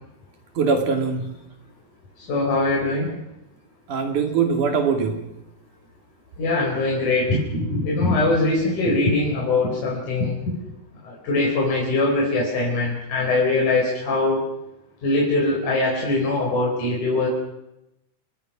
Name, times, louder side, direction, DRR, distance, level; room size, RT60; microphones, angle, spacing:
voice 1, 0.6-1.3 3.9-5.2, right 5 dB, 80° right, 4 dB, 4.1 m, -22 dB
voice 2, 2.2-3.1 6.4-10.6 11.0-14.4 15.0-17.3, left 2 dB, 75° left, -3 dB, 6.4 m, -22 dB
27.5 x 20.0 x 6.1 m, 0.87 s
omnidirectional pair, 3.5 m